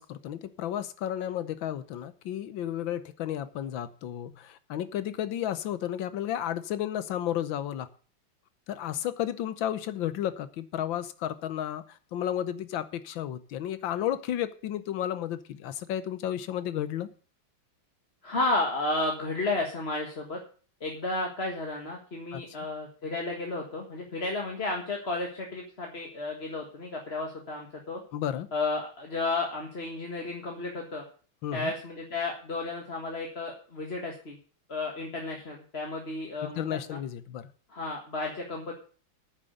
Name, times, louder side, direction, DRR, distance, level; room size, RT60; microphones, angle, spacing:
voice 1, 0.0-7.9 8.7-17.1 22.3-22.4 28.1-28.5 31.4-31.7 36.4-37.5, left 11 dB, 75° left, 1.6 m, -32 dB
voice 2, 18.2-20.4 20.8-28.0 28.5-31.0 31.5-34.4 34.7-37.0 37.7-38.7, left 2 dB, 35° left, 1.8 m, -32 dB
9.4 x 7.4 x 7.9 m
omnidirectional pair, 2.2 m